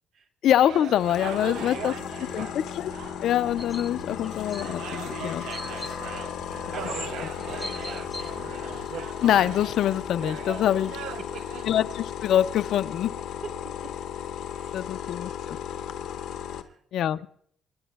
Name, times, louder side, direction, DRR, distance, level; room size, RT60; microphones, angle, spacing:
voice 1, 0.4-1.9 2.3-2.9 3.2-5.5 5.9-6.0 7.2-7.3 9.2-11.0 11.7-13.1 14.7-15.6 16.9-17.3, left 11 dB, 65° left, 13 dB, 0.4 m, -25 dB
sound 1, 0.6-11.8, right 9 dB, 75° right, 0.4 m, -40 dB
sound 2, 0.9-16.6, left 9 dB, 80° left, 0.8 m, -36 dB
voice 2, 1.4-2.5 6.1-8.7 10.7-10.8 11.2-11.7 13.4-14.0 14.5-15.0 15.8-15.9 16.5-16.8, right 5 dB, 55° right, 3 dB, 1.2 m, -46 dB
sound 3, 3.6-3.9 4.2-4.7 5.5-6.0 6.8-7.1 7.4-8.3 8.9-9.0, left 2 dB, 5° left, 0.6 m, -39 dB
28.0 x 10.0 x 2.3 m, 0.64 s
cardioid pair, 165°, 0 cm